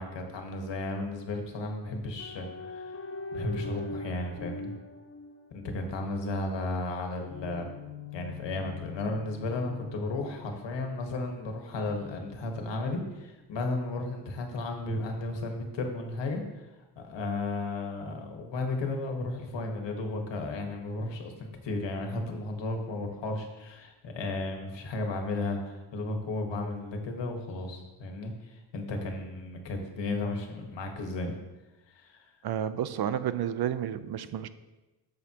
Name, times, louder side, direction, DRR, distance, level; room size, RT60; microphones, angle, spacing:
voice 1, 0.0-3.0 3.3-4.7 5.5-7.7 8.1-16.7 17.0-31.4 31.9-32.2, left 2 dB, 90° left, 3 dB, 1.6 m, -34 dB
sound 1, 2.2-5.9 7.3-11.1 11.9-13.1, left 3 dB, 35° left, 0.8 m, -42 dB
voice 2, 32.4-34.5, right 9 dB, 65° right, 13 dB, 0.6 m, -31 dB
12.5 x 7.3 x 2.9 m, 1.1 s
wide cardioid pair, 145°, 42 cm